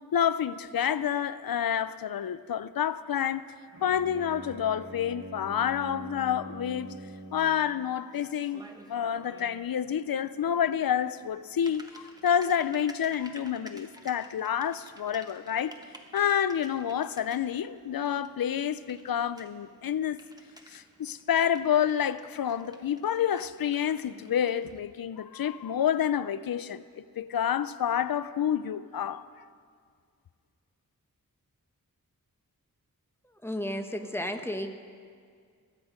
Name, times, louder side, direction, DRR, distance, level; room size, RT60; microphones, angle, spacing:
voice 1, 0.1-3.4 3.8-6.9 7.3-15.7 16.1-20.2 20.7-29.2, left 9 dB, 75° left, 0.5 m, -29 dB
Bowed string instrument, 3.7-7.7, right 1 dB, 60° right, 2.0 m, -44 dB
Typing, 6.7-24.8, right 1 dB, 10° right, 1.2 m, -54 dB
voice 2, 33.2-34.7, left 1 dB, 5° left, 1.0 m, -33 dB
21.5 x 8.4 x 5.1 m
wide cardioid pair, 55°, 35 cm